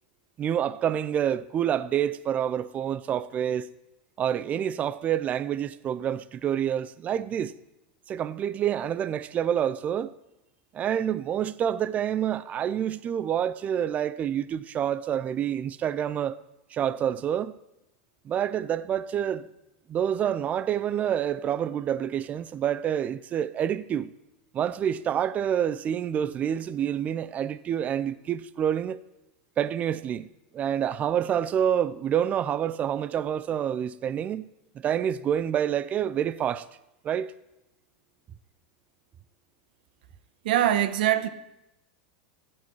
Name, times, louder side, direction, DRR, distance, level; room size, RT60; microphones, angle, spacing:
voice 1, 0.4-3.7 4.2-7.5 8.1-10.1 10.7-16.4 16.7-17.5 18.2-19.5 19.9-24.1 24.5-29.0 29.6-30.3 30.5-34.5 34.7-36.7 37.0-37.3, right 9 dB, 30° right, 0.5 m, -27 dB
voice 2, 40.4-41.3, right 12 dB, 75° right, 1.0 m, -22 dB
14.5 x 8.7 x 4.7 m
supercardioid pair, 125°, 5 cm